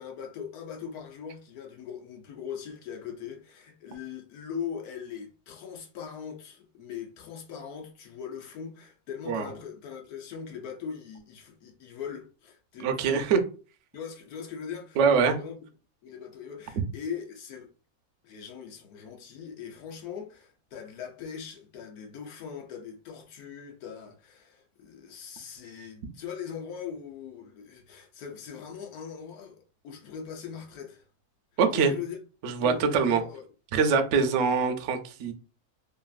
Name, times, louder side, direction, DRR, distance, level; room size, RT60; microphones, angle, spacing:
voice 1, 0.0-12.9 13.9-15.6 16.0-17.7 18.2-31.0 31.7-32.2 32.6-33.5 34.1-34.4, left 7 dB, 80° left, 1.2 m, -40 dB
voice 2, 12.8-13.4 15.0-15.3 31.6-31.9 32.4-33.2 33.7-35.3, right 5 dB, 65° right, 0.7 m, -23 dB
2.9 x 2.6 x 2.4 m
omnidirectional pair, 1.6 m